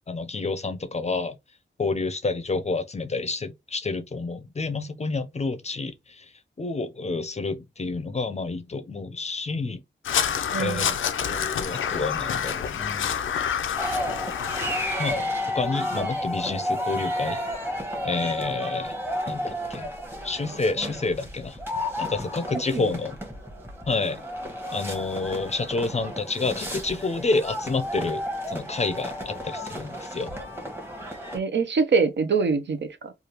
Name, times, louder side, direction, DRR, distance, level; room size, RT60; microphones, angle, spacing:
voice 1, 0.1-1.4 1.8-6.3 6.6-9.8 10.2-10.9 11.2-13.1 15.0-15.3 15.5-17.4 18.0-18.9 19.3-19.9 20.2-21.6 22.0-23.2 23.9-24.2 24.7-28.2 28.5-30.3, left 3 dB, 35° left, 0.5 m, -29 dB
Crow, 10.0-15.0, left 8 dB, 90° left, 0.4 m, -28 dB
voice 2, 10.5-10.9 22.7-22.9 31.3-33.1, right 4 dB, 65° right, 0.7 m, -24 dB
sound 1, 13.8-31.4, equal, 10° right, 1.0 m, -32 dB
3.3 x 2.3 x 2.9 m
cardioid pair, 65°, 20 cm